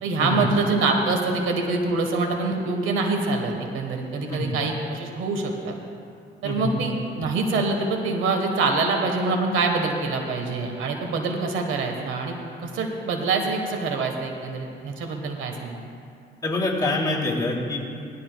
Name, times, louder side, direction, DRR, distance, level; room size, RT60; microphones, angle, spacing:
voice 1, 0.0-5.7 6.4-12.4 12.6-15.8, right 3 dB, 85° right, 3 dB, 1.3 m, -25 dB
voice 2, 16.4-17.8, left 2 dB, 20° left, -4 dB, 2.9 m, -25 dB
18.0 x 12.5 x 2.3 m, 2.4 s
cardioid pair, 90°, 20 cm